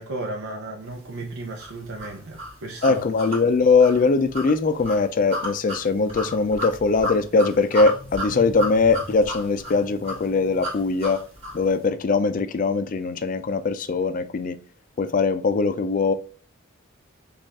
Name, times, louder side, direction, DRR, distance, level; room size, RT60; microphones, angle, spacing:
voice 1, 0.0-3.0, right 2 dB, 85° right, 0.6 m, -34 dB
sound 1, 1.6-11.7, left 1 dB, 30° right, 1.7 m, -33 dB
voice 2, 2.8-11.2 11.5-14.6 15.0-16.1, left 4 dB, 40° left, 0.4 m, -21 dB
5.2 x 2.4 x 3.4 m
head